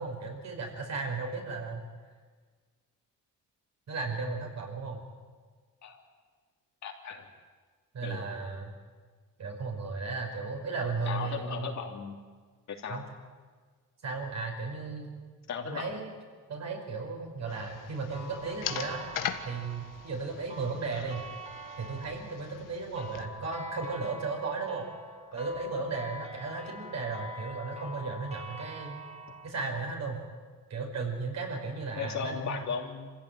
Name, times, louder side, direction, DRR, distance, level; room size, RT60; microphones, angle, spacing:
voice 1, 0.0-1.8 3.9-5.0 7.9-8.7 9.4-11.7 12.9-13.0 14.0-15.1 15.7-16.1 16.5-19.0 19.4-21.2 21.8-24.9 25.3-29.0 29.4-30.2 30.7-32.6, right 4 dB, 55° right, 2 dB, 5.2 m, -35 dB
voice 2, 6.8-7.3 8.0-8.2 11.0-12.2 12.7-13.0 15.5-15.9 20.9-21.1 32.0-33.1, left 6 dB, 60° left, 1 dB, 3.1 m, -36 dB
sound 1, 17.5-23.2, left 10 dB, 75° left, 1.5 m, -41 dB
sound 2, 18.1-29.5, equal, 20° right, 2.4 m, -45 dB
25.5 x 16.0 x 9.3 m, 1.5 s
cardioid pair, 125°, 32 cm